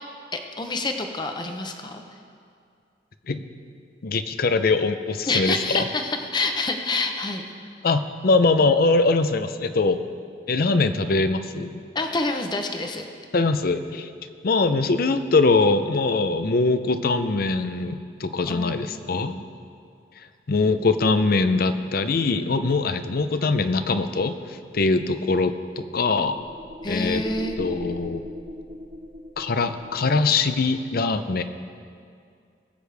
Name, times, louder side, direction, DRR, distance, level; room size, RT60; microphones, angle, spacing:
voice 1, 0.3-2.0 5.3-7.5 11.9-13.0 18.5-19.5 26.8-27.6, left 3 dB, 25° left, 5 dB, 0.8 m, -27 dB
voice 2, 4.0-5.9 7.8-10.0 10.5-11.7 13.3-14.1 14.4-19.4 20.5-26.4 26.9-27.2 27.6-28.2 29.4-31.4, left 3 dB, 55° left, 10 dB, 0.6 m, -22 dB
sound 1, 25.9-30.3, left 1 dB, 40° right, 0.8 m, -39 dB
21.0 x 8.2 x 3.4 m, 2.4 s
head